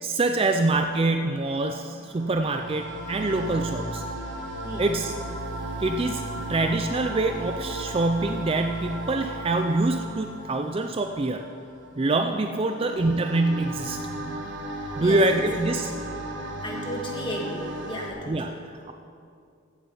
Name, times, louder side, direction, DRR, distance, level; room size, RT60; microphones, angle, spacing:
voice 1, 0.0-4.0 4.8-5.1 5.8-6.2 6.5-11.4 12.0-14.0 15.0-16.0 18.3-18.5, right 2 dB, 25° right, 6 dB, 0.4 m, -25 dB
sound 1, 0.9-18.1, right 1 dB, 55° right, 1.4 m, -36 dB
voice 2, 4.6-5.0 12.8-12.9 15.0-15.4 16.6-18.6, left 1 dB, 25° left, -1 dB, 1.7 m, -35 dB
15.0 x 7.6 x 5.5 m, 2.4 s
head